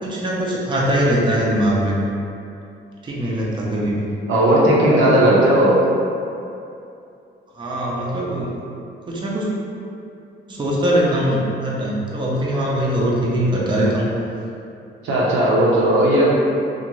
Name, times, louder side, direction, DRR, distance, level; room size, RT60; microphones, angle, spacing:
voice 1, 0.0-2.0 3.0-4.1 7.5-8.5 9.1-9.5 10.5-14.1, right 1 dB, 25° right, -5 dB, 0.5 m, -21 dB
voice 2, 4.3-5.8 15.0-16.3, right 1 dB, 85° right, -6 dB, 0.7 m, -15 dB
2.5 x 2.5 x 3.0 m, 2.6 s
cardioid pair, 90°, 20 cm